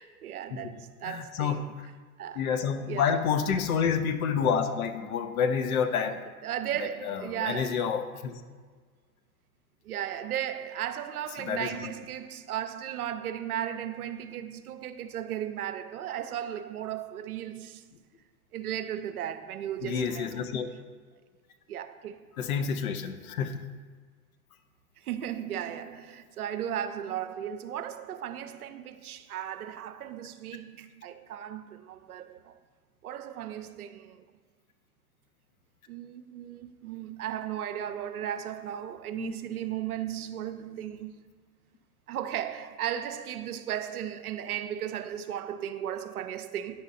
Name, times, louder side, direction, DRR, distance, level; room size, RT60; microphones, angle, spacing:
voice 1, 0.0-1.7 2.2-2.4 2.9-3.2 6.4-8.0 9.8-17.9 18.5-20.6 21.7-22.3 25.0-32.6 33.0-34.2 35.9-41.2 42.1-46.8, right 10 dB, 80° right, 0.5 m, -36 dB
voice 2, 1.0-1.6 2.4-6.2 7.0-8.4 11.4-11.9 19.8-20.7 22.4-23.6 39.2-39.3, left 7 dB, 70° left, 0.7 m, -29 dB
9.0 x 5.5 x 2.5 m
figure-of-eight pair, 85°, 43 cm